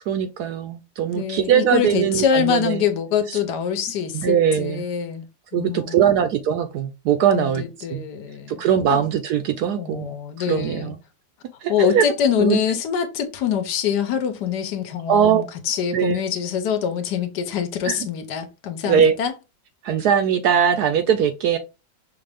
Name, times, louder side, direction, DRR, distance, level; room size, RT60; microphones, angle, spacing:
voice 1, 0.0-2.8 3.3-3.4 4.1-4.9 5.5-7.6 7.9-8.0 8.5-11.0 11.6-12.0 12.4-12.6 15.1-15.4 15.9-16.2 17.8-18.1 18.9-19.1 19.8-21.6, right 8 dB, 70° right, 0.9 m, -21 dB
voice 2, 1.1-5.3 5.5-6.2 7.3-9.0 9.8-10.9 11.7-19.3, left 8 dB, 65° left, 1.3 m, -24 dB
5.8 x 2.5 x 3.3 m
omnidirectional pair, 2.0 m